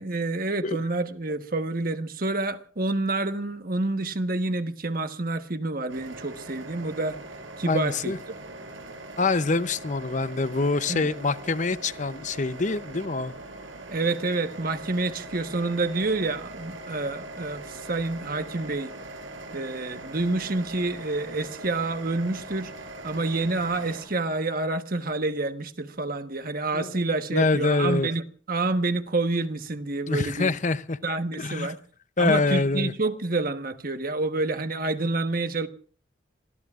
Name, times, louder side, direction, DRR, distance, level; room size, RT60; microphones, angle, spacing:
voice 1, 0.0-7.2 7.6-8.3 10.9-11.1 13.9-18.9 19.5-22.7 23.0-30.5 31.0-31.8 32.2-35.7, right 2 dB, 45° right, 1.3 m, -28 dB
sound 1, 5.9-24.0, right 2 dB, 80° right, 5.6 m, -41 dB
voice 2, 7.7-8.2 9.2-13.3 26.7-27.0 27.3-28.1 30.1-31.0 31.4-31.7 32.2-32.9, left 3 dB, 40° left, 0.7 m, -25 dB
28.0 x 21.0 x 2.5 m
head